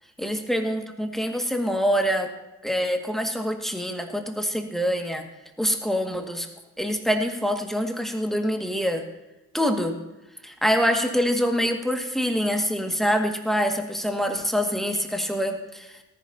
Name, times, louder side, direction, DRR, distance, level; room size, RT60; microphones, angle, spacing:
voice 1, 0.2-2.3 2.6-5.3 5.6-6.5 6.8-9.0 9.5-10.0 10.4-16.0, equal, ahead, 3 dB, 2.2 m, -25 dB
18.5 x 10.5 x 2.9 m, 1.0 s
hypercardioid pair, 50°, 43 cm